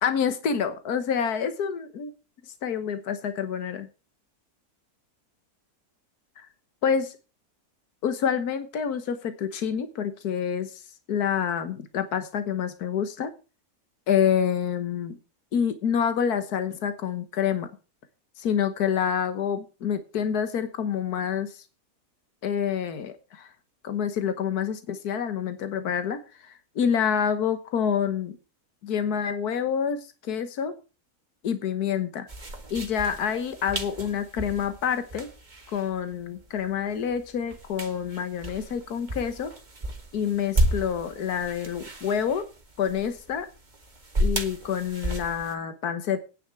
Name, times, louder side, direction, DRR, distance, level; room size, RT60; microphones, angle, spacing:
voice 1, 0.0-2.1 2.4-3.9 6.4-6.5 6.8-7.2 8.0-13.3 14.1-15.2 15.5-17.7 18.4-21.6 22.4-23.5 23.8-28.4 28.8-30.7 31.4-32.3 32.7-35.3 35.7-39.5 40.1-42.5 42.8-43.5 44.2-46.2, left 8 dB, 80° left, 10 dB, 1.7 m, -27 dB
sound 1, 32.3-45.5, right 1 dB, 30° right, 1.9 m, -33 dB
10.0 x 6.6 x 8.8 m, 0.33 s
omnidirectional pair, 1.6 m